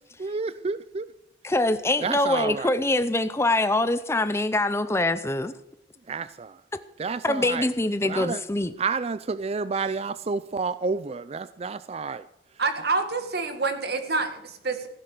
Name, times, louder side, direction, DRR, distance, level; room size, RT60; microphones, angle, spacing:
voice 1, 0.2-1.1 2.0-2.7 6.1-6.6 7.0-7.7 8.0-8.4 8.8-12.3, right 4 dB, 35° right, 14 dB, 0.4 m, -30 dB
voice 2, 1.4-5.5 7.2-8.7, left 2 dB, 15° left, 11 dB, 0.6 m, -24 dB
voice 3, 12.6-14.9, right 3 dB, 65° right, 7 dB, 2.1 m, -27 dB
15.5 x 10.5 x 6.7 m, 0.81 s
head